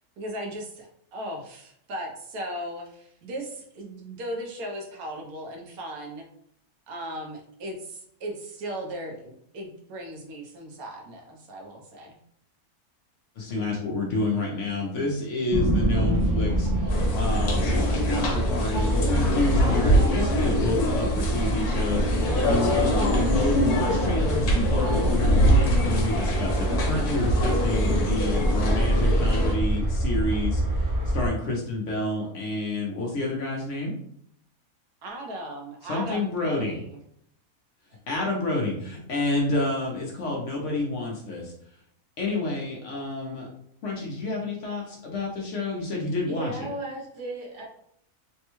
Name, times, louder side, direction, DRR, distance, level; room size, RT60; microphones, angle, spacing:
voice 1, 0.2-6.3 6.9-12.2 35.0-37.0, right 1 dB, 75° right, 1 dB, 1.1 m, -37 dB
voice 2, 13.4-33.9 35.8-36.8 38.1-41.5 42.2-43.5 43.8-46.7, left 2 dB, 60° left, -1 dB, 0.9 m, -29 dB
sound 1, 15.5-31.3, right 1 dB, 35° right, 0.3 m, -25 dB
sound 2, 16.9-29.6, equal, 80° left, 1.2 m, -25 dB
voice 3, 46.3-47.6, right 1 dB, 55° right, -4 dB, 1.1 m, -35 dB
3.4 x 2.2 x 3.0 m, 0.69 s
omnidirectional pair, 1.6 m